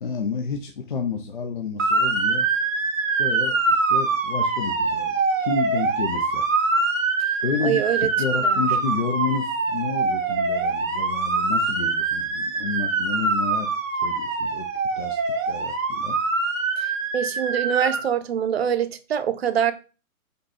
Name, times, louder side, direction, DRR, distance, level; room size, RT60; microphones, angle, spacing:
voice 1, 0.0-2.5 3.2-6.5 7.4-13.7 14.0-14.7 15.0-15.2 15.5-16.2, left 5 dB, 40° left, 0.4 m, -30 dB
Motor vehicle (road) / Siren, 1.8-18.0, right 3 dB, 65° right, 1.2 m, -24 dB
voice 2, 7.6-8.1 17.1-19.7, right 9 dB, 50° right, 0.5 m, -24 dB
5.2 x 2.2 x 4.1 m
figure-of-eight pair, 135°, 42 cm